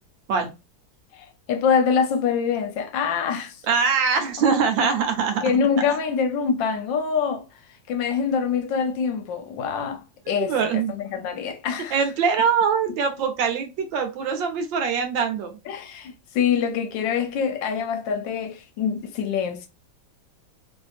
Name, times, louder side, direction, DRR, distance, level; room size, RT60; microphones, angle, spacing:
voice 1, 1.1-3.6 5.4-7.4 7.9-12.0 15.7-19.7, left 6 dB, 75° left, 1.2 m, -25 dB
voice 2, 3.7-5.4 10.3-10.9 11.9-15.6, right 6 dB, 70° right, 1.4 m, -23 dB
3.3 x 2.7 x 2.4 m
omnidirectional pair, 2.2 m